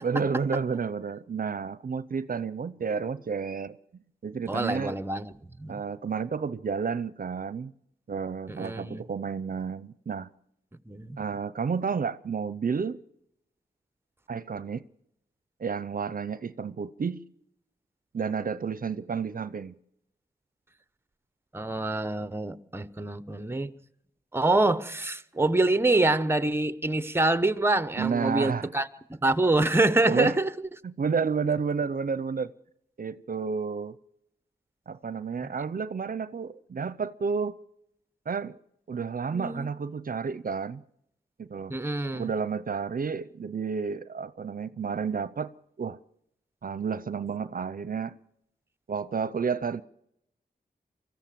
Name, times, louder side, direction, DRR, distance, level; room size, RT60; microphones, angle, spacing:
voice 1, 0.0-3.8 4.2-5.0 5.7-7.7 8.1-10.3 11.2-13.0 14.3-14.8 15.6-17.2 18.1-19.7 28.0-28.7 30.0-30.4 30.8-32.5 33.0-34.0 34.9-37.5 38.3-38.6 38.9-40.8 41.4-41.8 42.1-45.5 45.8-46.0 46.6-48.2 48.9-49.8, right 5 dB, 55° right, 0.7 m, -31 dB
voice 2, 4.5-5.8 8.5-9.0 10.9-11.2 21.5-23.7 24.3-28.9 29.2-30.5 39.3-39.7 41.7-42.3, right 2 dB, 15° right, 0.9 m, -26 dB
25.0 x 14.5 x 7.6 m
wide cardioid pair, 85°, 17 cm